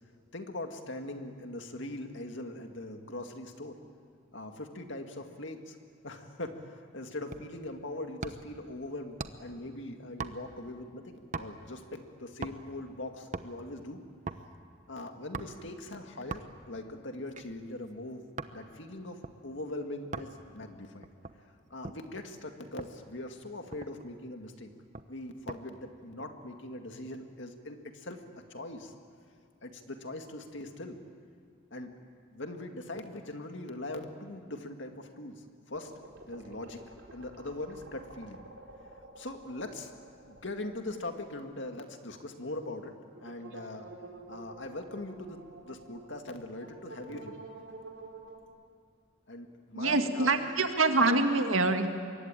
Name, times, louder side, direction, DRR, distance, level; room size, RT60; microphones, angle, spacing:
voice 1, 0.3-3.8 4.3-5.8 6.0-14.0 14.9-18.2 18.5-21.1 21.7-24.7 25.1-28.2 28.5-28.9 29.6-31.0 31.7-31.9 32.3-35.9 36.3-36.8 37.1-38.4 39.2-39.9 40.3-43.9 44.3-47.4 49.3-50.3, left 2 dB, 60° left, 5 dB, 2.1 m, -41 dB
sound 1, 7.3-7.6 8.2-8.6 9.2-9.6 10.2-10.7 11.3-11.7 12.4-12.8 13.2-13.6 14.3-14.5 15.3-15.7 16.3-16.7 17.3-18.6 19.2-19.4 20.1-20.4 21.0-22.1 22.8-23.0 23.4-23.5 23.7-24.1 24.9-25.6 26.0-26.3, right 3 dB, 35° right, 0.9 m, -41 dB
sound 2, 35.7-41.5 41.7-41.8 43.1-48.4, right 2 dB, 65° right, 4.0 m, -50 dB
voice 2, 49.7-51.9, right 3 dB, 80° right, 6 dB, 2.0 m, -25 dB
25.0 x 22.5 x 9.0 m, 2.2 s
head